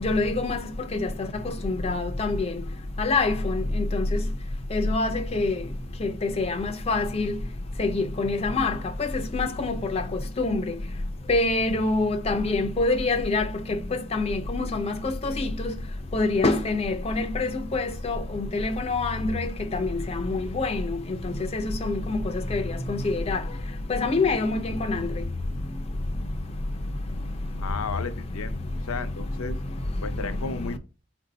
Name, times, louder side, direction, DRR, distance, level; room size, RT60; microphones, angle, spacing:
voice 1, 0.0-0.6 0.9-1.1 1.6-2.5 3.0-4.2 4.7-5.6 6.0-7.4 7.8-8.7 9.0-10.0 10.4-10.6 11.3-13.8 14.1-15.7 16.1-20.9 21.2-22.2 22.5-22.6 22.9-23.4 23.9-24.6 24.9-25.1, left 3 dB, 30° left, 0.4 m, -25 dB
voice 2, 27.6-28.6 28.9-29.6 30.0-30.8, left 5 dB, 85° left, 0.6 m, -33 dB
4.4 x 2.6 x 4.0 m
head